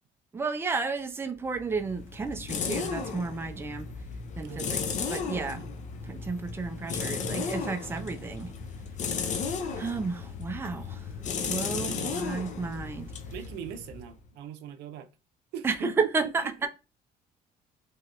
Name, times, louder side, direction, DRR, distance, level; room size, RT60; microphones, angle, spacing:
voice 1, 0.3-3.9 4.4-4.8 5.1-5.6 6.0-8.5 9.8-11.1 11.4-13.1 15.6-16.7, right 4 dB, 15° right, 0.4 m, -32 dB
sound 1, 1.5-14.2, left 5 dB, 45° left, 0.5 m, -35 dB
voice 2, 4.4-4.9 5.5-5.8 9.0-9.3 11.8-12.2 13.3-15.1 15.5-16.1 16.4-16.7, right 8 dB, 90° right, 0.5 m, -42 dB
3.0 x 2.3 x 2.8 m
cardioid pair, 110°, 17 cm